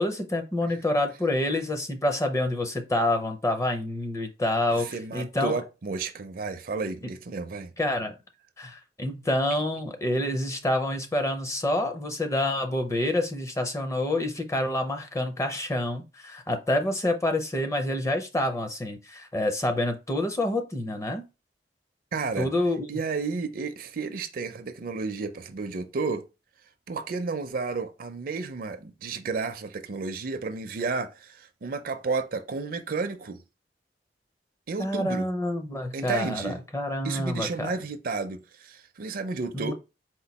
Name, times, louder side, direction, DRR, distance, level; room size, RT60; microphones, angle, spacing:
voice 1, 0.0-4.9 5.1-5.5 7.8-8.1 8.6-21.2 22.4-23.0 34.8-37.7 39.5-39.7, left 1 dB, 15° left, 0.5 m, -27 dB
voice 2, 4.7-7.7 22.1-22.5 22.9-26.2 26.9-33.4 34.7-35.3 35.9-36.6 37.0-39.7, right 4 dB, 55° right, 0.5 m, -32 dB
4.4 x 2.2 x 4.0 m
head